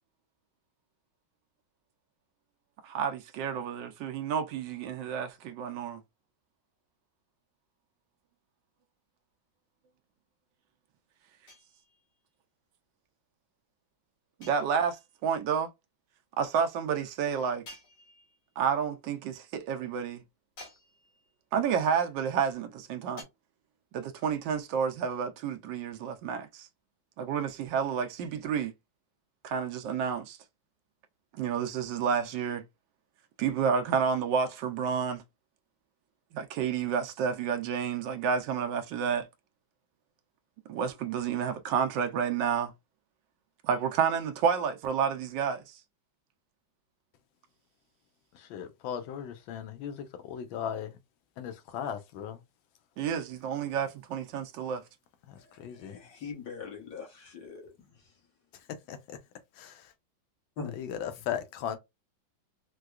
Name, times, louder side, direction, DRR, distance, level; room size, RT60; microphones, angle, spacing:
voice 1, 2.8-6.0 14.4-15.7 16.4-17.6 18.6-20.2 21.5-23.2 23.9-26.7 27.2-28.7 29.4-30.4 31.3-32.6 33.4-35.2 36.3-39.3 40.7-42.7 43.6-45.8 53.0-54.8, right 7 dB, 75° right, 1.2 m, -30 dB
sound 1, 11.5-12.2 14.4-15.2 17.6-18.6 20.6-21.4 23.2-23.3, left 2 dB, 75° left, 2.5 m, -51 dB
voice 2, 48.3-51.0 51.4-52.4 55.3-56.1 58.5-59.2 59.5-59.9 60.7-61.8, left 9 dB, 90° left, 1.4 m, -38 dB
voice 3, 55.7-57.6 60.6-60.8, left 5 dB, 55° left, 1.6 m, -41 dB
4.6 x 2.2 x 2.3 m
omnidirectional pair, 2.1 m